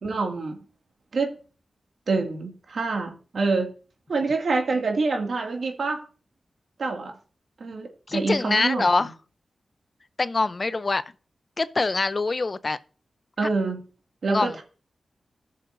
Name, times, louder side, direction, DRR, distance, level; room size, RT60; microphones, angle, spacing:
voice 1, 0.0-0.6 1.1-1.3 2.1-3.7 4.1-6.0 6.8-7.1 7.6-9.1 13.4-13.8 14.2-14.6, right 3 dB, 75° right, 2.2 m, -26 dB
voice 2, 8.1-9.1 10.2-11.0 11.6-12.8 14.3-14.5, left 3 dB, 50° left, 0.5 m, -24 dB
15.0 x 6.7 x 2.6 m
cardioid pair, 45°, 0 cm